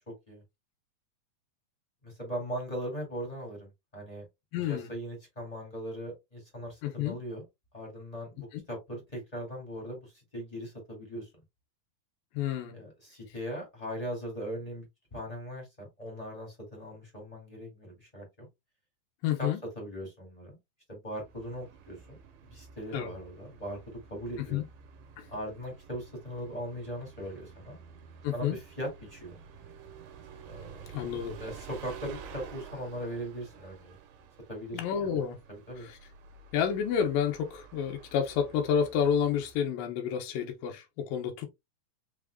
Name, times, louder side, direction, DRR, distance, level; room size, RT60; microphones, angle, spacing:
voice 1, 2.0-4.2 4.7-7.4 7.7-11.3 12.7-14.8 15.1-18.5 19.4-19.5 19.7-20.6 20.9-22.2 22.5-23.8 24.1-24.6 25.3-27.8 28.3-29.4 30.4-30.8 31.4-33.9 34.5-35.1 35.5-35.9, equal, 15° left, 1.5 m, -39 dB
voice 2, 4.5-4.9 6.8-7.2 8.5-8.6 12.3-12.8 19.2-19.6 22.9-23.1 24.4-24.6 25.2-25.3 28.2-28.6 30.9-31.4 34.7-35.4 35.8-36.0 36.5-41.5, left 8 dB, 90° left, 2.7 m, -30 dB
Bus, 21.2-39.7, right 6 dB, 80° right, 2.6 m, -50 dB
6.0 x 3.6 x 2.3 m
omnidirectional pair, 3.8 m